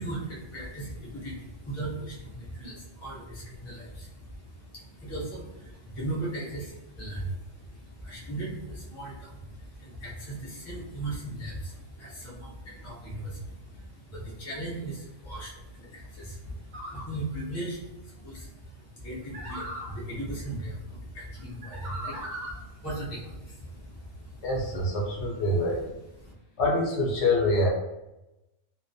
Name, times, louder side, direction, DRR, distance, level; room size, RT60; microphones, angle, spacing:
voice 1, 0.0-24.5 26.2-26.3, right 1 dB, 25° left, -6 dB, 0.3 m, -38 dB
sound 1, 16.7-17.0 19.3-19.9 21.6-22.6, right 1 dB, 50° right, 0.6 m, -38 dB
voice 2, 24.4-25.9 26.6-27.7, left 1 dB, 70° left, -2 dB, 0.9 m, -25 dB
2.2 x 2.1 x 2.6 m, 0.94 s
omnidirectional pair, 1.3 m